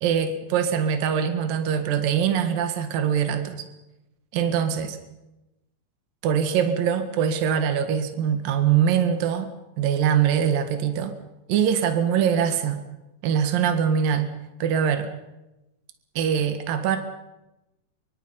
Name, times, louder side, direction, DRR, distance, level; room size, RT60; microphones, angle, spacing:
voice 1, 0.0-3.6 4.3-5.0 6.2-9.5 9.8-11.2 11.5-12.8 13.2-14.3 14.6-15.1 16.2-17.0, right 8 dB, 70° right, 7 dB, 3.3 m, -23 dB
26.5 x 23.5 x 5.6 m, 0.95 s
omnidirectional pair, 4.3 m